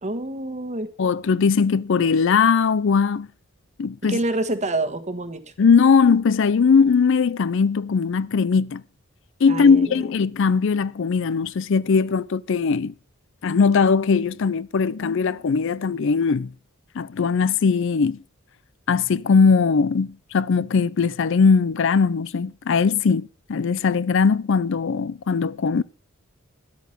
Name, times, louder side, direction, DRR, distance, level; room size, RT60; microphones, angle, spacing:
voice 1, 0.0-0.9 4.1-5.5 9.5-10.0, right 2 dB, 35° right, 1.3 m, -27 dB
voice 2, 1.0-3.3 3.8-4.2 5.6-8.8 9.4-12.9 13.4-16.5 17.0-18.2 18.9-25.8, left 5 dB, 65° left, 0.5 m, -20 dB
10.0 x 8.6 x 6.5 m
head